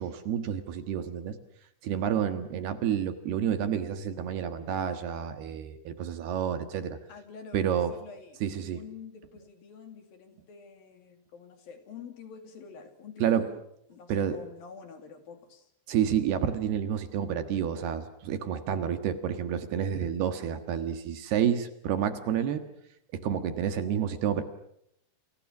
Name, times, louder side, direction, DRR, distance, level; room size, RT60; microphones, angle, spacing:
voice 1, 0.0-1.4 1.8-7.0 7.5-7.9 8.4-8.8 13.2-13.5 14.1-14.4 15.9-22.6 23.2-24.4, right 9 dB, 65° right, 9 dB, 3.3 m, -29 dB
voice 2, 7.1-8.4 8.7-13.6 13.9-15.7, left 6 dB, 55° left, 7 dB, 4.1 m, -48 dB
29.0 x 28.5 x 6.2 m, 0.74 s
omnidirectional pair, 5.3 m